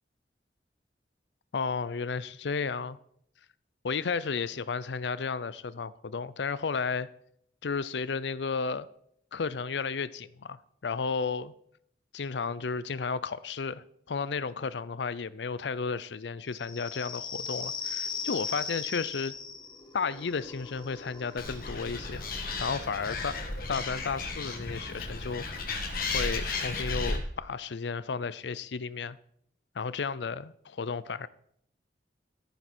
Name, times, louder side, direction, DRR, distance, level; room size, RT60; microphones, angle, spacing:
voice 1, 1.5-3.0 3.8-7.1 7.6-8.9 9.3-11.5 12.1-19.3 19.9-22.2 22.6-23.4 23.7-25.5 26.1-29.2 29.7-31.3, left 5 dB, 80° left, 0.5 m, -33 dB
sound 1, 16.5-23.8, left 5 dB, 25° left, 1.2 m, -39 dB
Animal, 21.4-27.2, left 3 dB, 55° left, 2.0 m, -34 dB
15.0 x 9.3 x 4.3 m
head